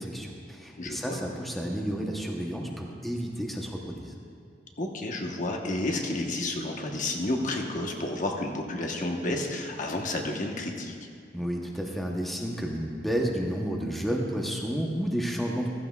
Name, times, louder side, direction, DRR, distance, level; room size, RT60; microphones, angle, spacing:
voice 1, 0.0-4.1 11.3-15.7, equal, ahead, -1 dB, 0.9 m, -31 dB
voice 2, 0.8-1.2 4.8-11.0, left 2 dB, 45° left, 1 dB, 1.1 m, -31 dB
15.0 x 14.5 x 2.4 m, 2.3 s
head